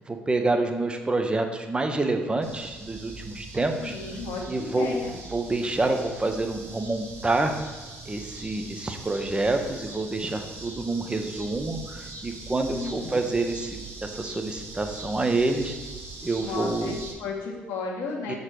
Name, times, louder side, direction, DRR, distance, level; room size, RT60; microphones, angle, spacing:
voice 1, 0.1-3.9 4.5-5.0 5.3-7.5 8.1-15.7 16.2-16.9 18.3-18.4, right 2 dB, 20° right, 5 dB, 0.9 m, -27 dB
sound 1, 2.4-17.1, right 3 dB, 55° right, 1.7 m, -42 dB
voice 2, 3.8-5.1 12.7-13.3 16.3-18.3, left 4 dB, 75° left, -1 dB, 1.2 m, -34 dB
6.5 x 4.1 x 4.8 m, 1.4 s
supercardioid pair, 60°, 5 cm